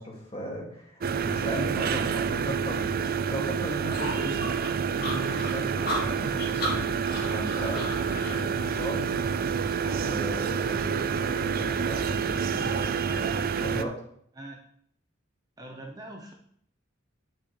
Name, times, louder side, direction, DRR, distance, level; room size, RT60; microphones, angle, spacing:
voice 1, 0.0-4.6 4.9-9.2 10.0-13.9, equal, 30° left, -3 dB, 2.4 m, -37 dB
sound 1, 1.0-13.8, right 6 dB, 45° right, 0.4 m, -28 dB
sound 2, 3.9-8.4, left 1 dB, 50° left, 2.4 m, -34 dB
sound 3, 5.9-13.9, left 2 dB, 70° left, 1.0 m, -44 dB
voice 2, 12.6-13.9 14.4-14.6 15.6-16.3, right 1 dB, 20° right, 1 dB, 0.8 m, -43 dB
10.5 x 5.8 x 3.4 m, 0.65 s
head